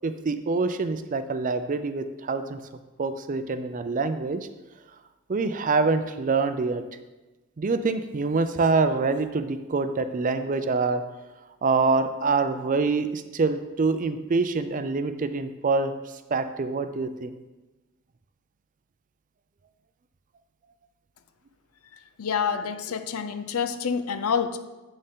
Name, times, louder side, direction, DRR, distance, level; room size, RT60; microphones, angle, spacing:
voice 1, 0.0-2.6 3.0-4.5 5.3-6.8 7.6-11.0 11.6-15.9 16.3-17.3, right 4 dB, 35° right, 10 dB, 0.4 m, -25 dB
voice 2, 22.2-24.6, left 6 dB, 75° left, 10 dB, 0.5 m, -27 dB
7.8 x 6.5 x 3.7 m, 1.1 s
head